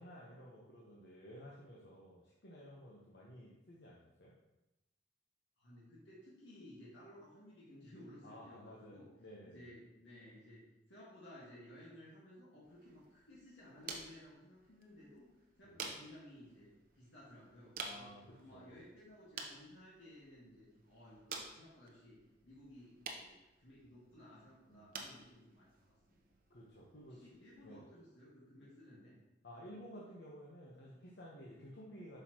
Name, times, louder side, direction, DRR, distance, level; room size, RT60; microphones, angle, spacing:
voice 1, 0.0-4.3 8.2-9.7 15.6-15.8 17.8-18.8 24.7-24.8 26.5-27.3 27.6-27.8 28.6-28.7 29.4-32.2, equal, 70° left, -5 dB, 1.2 m, -54 dB
voice 2, 5.6-9.1 9.4-10.6 10.9-15.3 15.6-18.1 18.4-26.2 27.1-29.2, left 1 dB, 90° left, -7 dB, 1.8 m, -57 dB
sound 1, 12.6-27.7, right 4 dB, 50° right, 0.9 m, -52 dB
8.3 x 5.7 x 3.0 m, 0.95 s
head